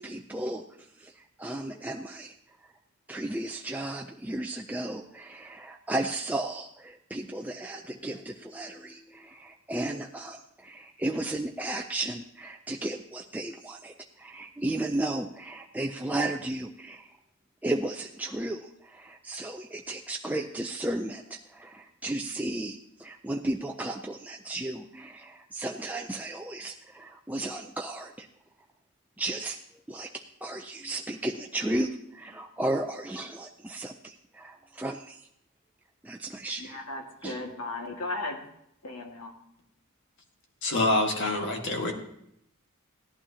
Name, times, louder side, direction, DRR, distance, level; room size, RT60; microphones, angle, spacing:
voice 1, 0.0-2.3 2.6-2.7 3.1-17.2 17.6-28.3 29.2-29.6 29.9-35.3 36.0-36.8 37.2-37.4, right 1 dB, 5° right, 2 dB, 0.4 m, -34 dB
voice 2, 36.6-38.4 38.8-39.4, left 2 dB, 90° left, 2 dB, 1.9 m, -36 dB
voice 3, 40.6-41.9, left 2 dB, 55° left, 2 dB, 1.7 m, -26 dB
16.5 x 11.5 x 2.8 m, 0.75 s
head